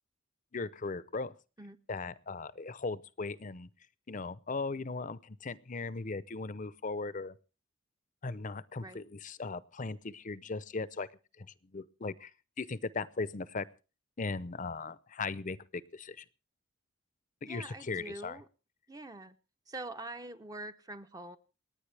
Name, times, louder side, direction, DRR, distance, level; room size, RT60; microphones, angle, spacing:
voice 1, 0.5-1.3 1.9-3.7 4.1-7.3 8.2-11.1 11.4-11.5 11.7-12.3 12.6-13.7 14.2-16.2 17.4-18.4, left 3 dB, 40° left, 17 dB, 0.7 m, -38 dB
voice 2, 17.5-18.5 18.9-19.4 19.7-21.4, right 2 dB, 20° right, 9 dB, 0.7 m, -44 dB
28.5 x 9.5 x 3.4 m, 0.33 s
head